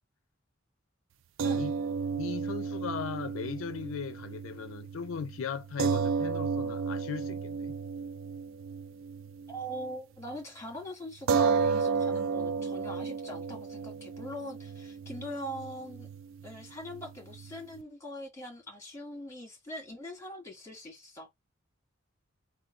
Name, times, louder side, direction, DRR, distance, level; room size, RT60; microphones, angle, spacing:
voice 1, 1.4-1.8 9.5-16.1 16.4-21.3, equal, 15° left, 1.8 m, -42 dB
sound 1, 1.4-9.9 10.2-10.4 11.3-17.8, right 5 dB, 70° right, 0.4 m, -33 dB
voice 2, 2.1-7.7, left 6 dB, 80° left, 0.4 m, -38 dB
3.7 x 2.2 x 4.2 m
head